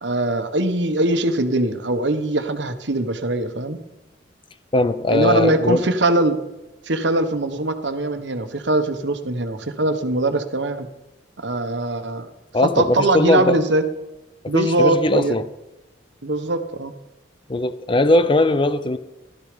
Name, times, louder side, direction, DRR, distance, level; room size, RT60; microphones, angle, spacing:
voice 1, 0.0-3.8 5.1-6.4 6.8-10.9 11.4-12.3 12.8-13.8 14.5-15.3 16.2-16.9, right 2 dB, 70° right, 1.3 m, -21 dB
voice 2, 4.7-5.8 12.5-13.6 14.4-15.5 17.5-19.0, left 2 dB, 25° left, 0.6 m, -19 dB
15.5 x 12.5 x 5.2 m
head